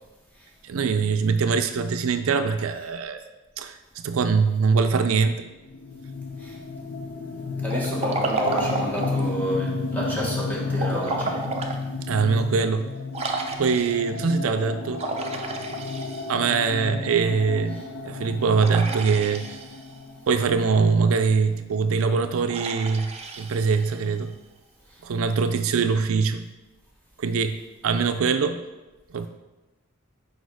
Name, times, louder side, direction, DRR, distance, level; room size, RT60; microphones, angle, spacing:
voice 1, 0.6-3.2 3.6-3.8 4.0-5.4 12.1-12.9 13.6-15.0 16.3-19.6 20.3-24.3 25.0-26.4 27.2-27.6 27.8-28.6 29.1-29.3, right 5 dB, 75° right, 9 dB, 0.4 m, -23 dB
sound 1, 5.6-21.3, left 3 dB, 55° left, 0.5 m, -33 dB
voice 2, 7.6-11.4 17.7-17.8, equal, 10° left, -5 dB, 1.5 m, -30 dB
Liquid, 7.7-9.3 10.7-11.8 12.3-12.4 13.1-14.1 14.9-16.6 18.6-20.0 22.5-24.1, right 3 dB, 30° right, 0.6 m, -31 dB
6.4 x 5.0 x 4.7 m, 1.1 s
head